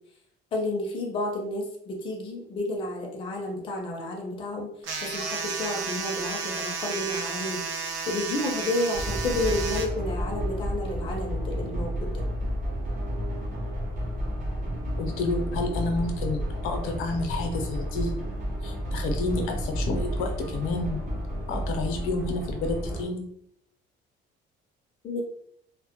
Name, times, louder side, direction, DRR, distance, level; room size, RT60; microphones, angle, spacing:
voice 1, 0.5-4.7 5.0-12.2 25.0-25.2, left 1 dB, 25° left, 0 dB, 0.4 m, -31 dB
sound 1, 4.8-9.9, right 5 dB, 60° right, 0.4 m, -32 dB
sound 2, 8.9-23.1, equal, 40° right, 0.8 m, -31 dB
voice 2, 15.0-18.1 18.6-21.0 21.5-23.2, left 3 dB, 85° left, 4 dB, 0.6 m, -30 dB
2.1 x 2.0 x 2.8 m, 0.71 s
cardioid pair, 175°, 21 cm